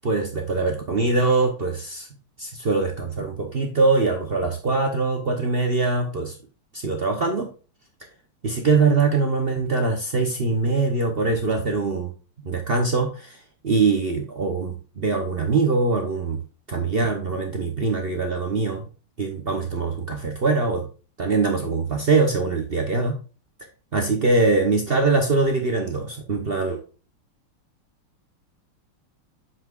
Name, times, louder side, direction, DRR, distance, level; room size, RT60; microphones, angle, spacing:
voice 1, 0.0-2.1 2.4-6.3 6.7-7.5 8.4-12.1 12.4-13.4 13.6-16.4 16.7-18.9 19.2-20.8 21.2-23.2 23.9-26.8, right 3 dB, 75° right, 4 dB, 0.5 m, -23 dB
7.6 x 6.1 x 2.4 m, 0.35 s
omnidirectional pair, 2.4 m